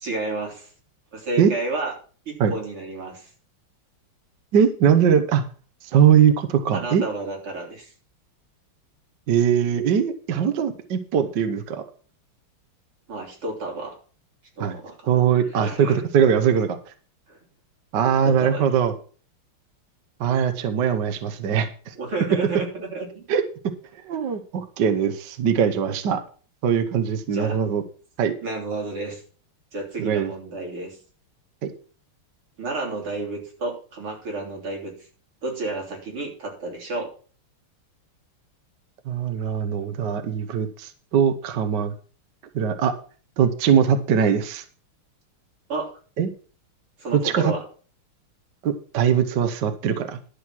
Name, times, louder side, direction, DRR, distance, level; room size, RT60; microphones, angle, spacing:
voice 1, 0.0-0.7 1.1-1.9 2.3-3.3 6.7-7.9 13.1-13.9 14.6-15.2 15.6-16.0 17.3-17.4 18.2-18.8 22.0-23.2 27.3-27.6 28.4-29.2 29.7-31.0 32.6-34.9 35.4-37.1 45.7-45.9 47.0-47.6, right 2 dB, 90° right, 0 dB, 4.1 m, -31 dB
voice 2, 4.5-5.4 5.8-7.0 9.3-11.8 14.6-14.8 15.1-16.8 17.9-18.9 20.2-21.9 23.3-23.4 24.0-26.2 26.6-27.8 28.2-28.3 30.0-30.3 31.6-31.7 39.0-41.9 42.5-42.9 43.4-44.6 46.2-46.3 47.1-47.5 48.6-50.2, right 8 dB, 60° right, 9 dB, 1.5 m, -21 dB
11.5 x 6.5 x 6.1 m, 0.40 s
omnidirectional pair, 2.3 m